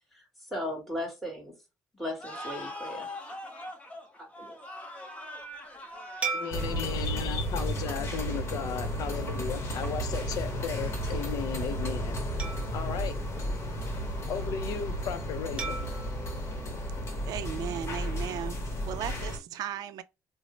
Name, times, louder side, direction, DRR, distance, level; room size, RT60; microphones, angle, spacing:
voice 1, 0.5-1.5 1.9-3.1 4.2-4.6, left 1 dB, ahead, 1.6 m, -36 dB
sound 1, 2.2-8.6, left 1 dB, 20° left, 0.8 m, -43 dB
sound 2, 6.2-8.9 9.5-9.7 12.4-14.2 15.6-17.9, right 5 dB, 20° right, 1.0 m, -40 dB
voice 2, 6.3-12.2 12.7-13.1 14.3-15.7, left 8 dB, 70° left, 0.5 m, -35 dB
sound 3, 6.5-19.4, equal, 45° left, 1.0 m, -33 dB
voice 3, 17.3-18.6 18.8-20.0, right 10 dB, 75° right, 0.4 m, -36 dB
3.0 x 2.0 x 3.8 m
cardioid pair, 100°, 7 cm